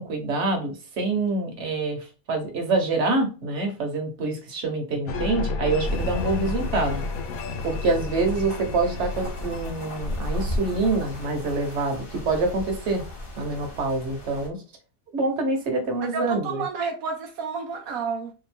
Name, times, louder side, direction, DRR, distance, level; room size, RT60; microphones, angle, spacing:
voice 1, 0.0-2.0 2.3-7.0 7.6-13.0 13.4-14.6 15.1-16.6, right 3 dB, 55° right, 1.2 m, -26 dB
sound 1, 5.1-11.3, left 3 dB, 85° left, 1.1 m, -33 dB
sound 2, 5.8-14.5, left 1 dB, 45° left, 1.1 m, -34 dB
voice 2, 16.0-18.3, right 5 dB, 85° right, 1.1 m, -30 dB
2.9 x 2.6 x 4.2 m
omnidirectional pair, 1.5 m